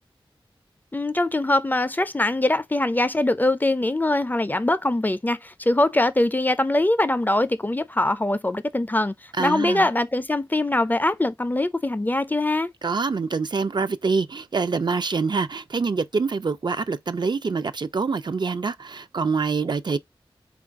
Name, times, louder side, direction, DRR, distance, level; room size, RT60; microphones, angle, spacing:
voice 1, 0.9-12.7, left 2 dB, 20° left, 0.4 m, -22 dB
voice 2, 9.4-9.9 12.8-20.0, right 4 dB, 50° right, 0.4 m, -25 dB
3.8 x 2.4 x 3.4 m
wide cardioid pair, 65°, 10 cm